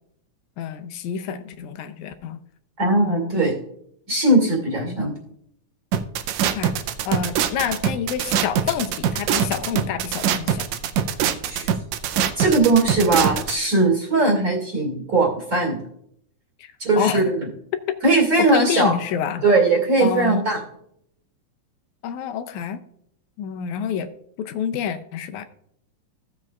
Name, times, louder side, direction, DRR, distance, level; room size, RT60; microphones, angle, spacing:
voice 1, 0.6-2.4 2.9-3.4 4.9-5.0 6.4-6.7 7.1-10.6 16.6-17.2 17.9-18.0 18.5-19.4 20.0-20.5 22.0-22.8 23.4-24.1 24.4-25.4, left 8 dB, 80° left, 9 dB, 2.0 m, -28 dB
voice 2, 2.8-3.5 4.1-5.1 11.5-11.7 12.4-15.8 16.8-17.5 18.0-18.9 19.4-20.6, right 2 dB, 30° right, 1 dB, 2.3 m, -19 dB
sound 1, 5.9-13.5, right 8 dB, 75° right, 1.7 m, -23 dB
15.5 x 7.5 x 2.4 m, 0.69 s
omnidirectional pair, 3.5 m